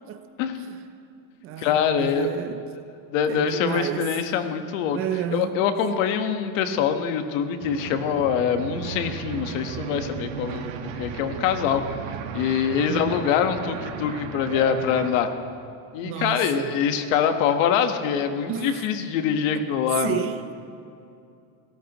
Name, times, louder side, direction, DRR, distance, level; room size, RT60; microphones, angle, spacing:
voice 1, 0.4-0.8 1.6-2.3 3.1-5.0 5.3-11.8 12.3-15.3 15.9-20.2, left 7 dB, 65° left, 1.4 m, -24 dB
voice 2, 1.4-2.6 3.3-4.2 4.9-5.7 12.9-13.2 16.0-16.7 18.5-18.8 19.5-19.6 20.0-20.4, right 11 dB, 35° right, 0.5 m, -31 dB
sound 1, 7.6-15.1, right 7 dB, 70° right, 1.5 m, -35 dB
26.5 x 17.5 x 3.0 m
supercardioid pair, 160°, 41 cm